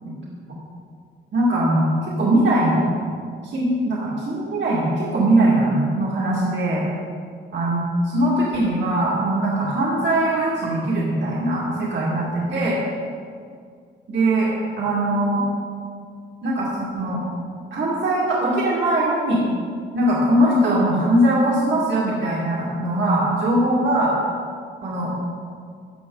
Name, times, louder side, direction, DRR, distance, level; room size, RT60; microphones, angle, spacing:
voice 1, 1.3-2.9 3.4-6.8 7.5-12.8 14.1-15.4 16.4-17.2 17.7-19.5 19.9-24.1 24.8-25.1, right 1 dB, 70° right, -6 dB, 2.2 m, -21 dB
14.5 x 7.9 x 3.9 m, 2.1 s
cardioid pair, 90°, 19 cm